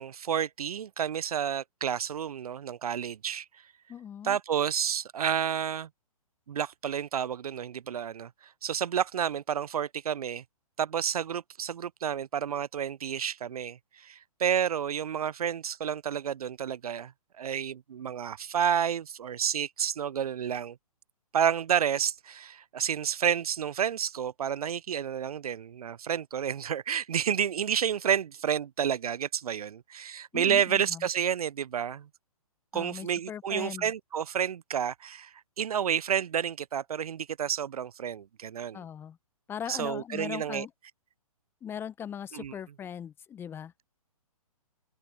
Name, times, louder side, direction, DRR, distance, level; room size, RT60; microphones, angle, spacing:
voice 1, 0.0-3.5 4.2-5.9 6.5-8.3 8.6-10.4 10.8-17.1 17.4-20.8 21.3-32.1 32.7-38.8 39.7-40.7 42.3-42.5, right 8 dB, 80° right, 0.4 m, -30 dB
voice 2, 3.9-4.4 30.3-31.1 32.7-33.9 38.7-39.2 39.5-40.7 41.6-43.9, left 8 dB, 10° left, 0.6 m, -39 dB
open air
hypercardioid pair, 130°, 19 cm